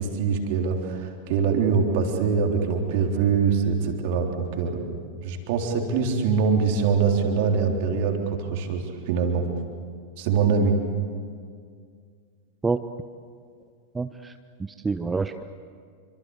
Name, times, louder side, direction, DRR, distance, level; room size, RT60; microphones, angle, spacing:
voice 1, 0.0-5.0 5.2-9.4 10.2-10.8, right 5 dB, 50° right, 3 dB, 3.7 m, -23 dB
voice 2, 13.9-14.3 14.6-15.4, right 4 dB, 15° right, 10 dB, 0.8 m, -27 dB
28.0 x 25.0 x 8.2 m, 2.1 s
figure-of-eight pair, 90°, 0 cm